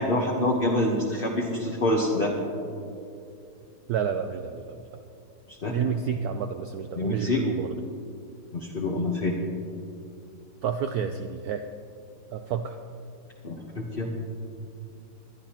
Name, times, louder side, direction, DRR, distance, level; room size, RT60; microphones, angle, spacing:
voice 1, 0.0-2.4 5.6-5.8 6.9-7.4 8.5-9.4 13.4-14.1, left 1 dB, 35° left, -1 dB, 1.0 m, -26 dB
voice 2, 3.9-4.9 5.7-7.8 10.6-11.6 12.3-12.8, right 7 dB, 75° right, 7 dB, 0.8 m, -30 dB
20.5 x 12.0 x 2.9 m, 2.6 s
omnidirectional pair, 2.1 m